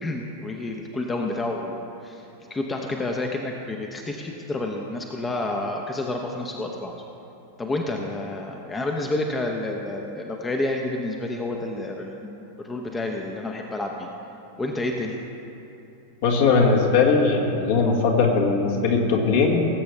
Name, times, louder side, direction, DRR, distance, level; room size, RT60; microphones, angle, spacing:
voice 1, 0.0-2.2 2.5-6.9 7.6-14.1 14.6-15.2, left 2 dB, 15° left, 2 dB, 0.8 m, -29 dB
voice 2, 16.2-19.7, left 4 dB, 55° left, -1 dB, 1.7 m, -20 dB
19.0 x 8.1 x 3.3 m, 2.8 s
figure-of-eight pair, 90°, 0 cm